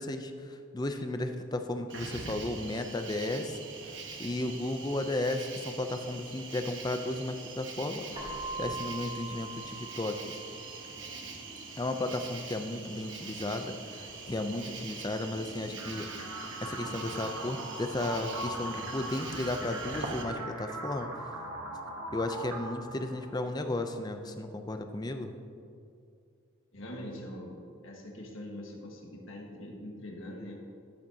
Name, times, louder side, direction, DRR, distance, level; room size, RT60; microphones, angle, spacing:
voice 1, 0.0-3.6 4.2-8.3 8.6-10.4 11.8-16.1 16.6-21.1 22.1-25.3, left 2 dB, 20° left, 7 dB, 0.4 m, -34 dB
Cricket, 1.9-20.2, right 4 dB, 60° right, 1.1 m, -43 dB
Keyboard (musical), 8.1-10.9, right 2 dB, 25° right, 1.6 m, -41 dB
sound 1, 15.8-23.7, right 1 dB, 80° right, 1.5 m, -40 dB
voice 2, 26.7-27.5 27.8-30.6, left 1 dB, 70° left, 0 dB, 1.5 m, -43 dB
13.5 x 7.7 x 2.8 m, 2.5 s
head